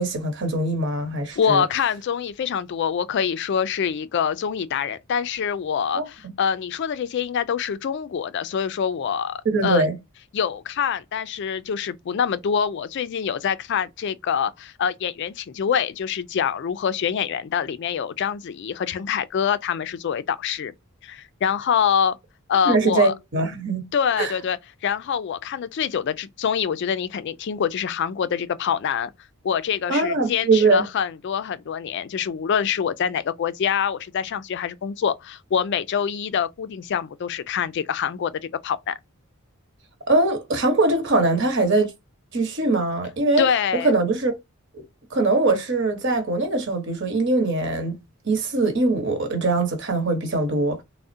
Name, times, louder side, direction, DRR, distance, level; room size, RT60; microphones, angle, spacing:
voice 1, 0.0-1.6 5.9-6.0 9.4-10.0 22.6-23.8 24.2-24.3 29.9-30.9 40.1-41.9 42.3-43.4 43.8-44.3 44.7-44.8 45.1-48.0 48.2-50.8, right 2 dB, 55° right, 1.1 m, -22 dB
voice 2, 1.4-9.9 10.3-20.7 21.0-22.2 22.5-23.1 23.9-29.1 29.4-38.3 38.6-39.0 43.4-43.9, left 7 dB, 55° left, 0.3 m, -25 dB
3.6 x 2.1 x 2.6 m
head